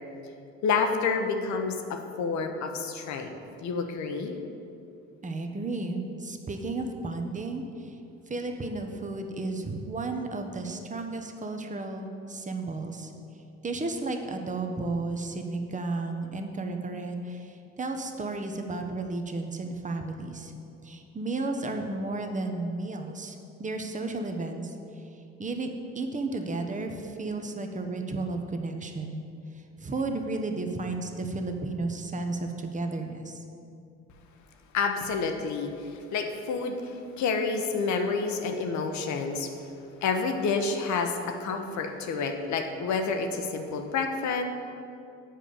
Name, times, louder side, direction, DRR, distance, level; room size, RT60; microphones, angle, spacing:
voice 1, 0.6-3.3 3.6-4.4 34.7-39.5 40.0-44.4, left 4 dB, 60° left, 5 dB, 1.0 m, -29 dB
voice 2, 5.2-8.0 8.3-13.1 13.6-20.5 20.8-25.7 25.9-29.2 29.8-33.4, right 2 dB, 25° right, 4 dB, 1.0 m, -33 dB
7.5 x 4.9 x 7.0 m, 2.7 s
hypercardioid pair, 60°, 32 cm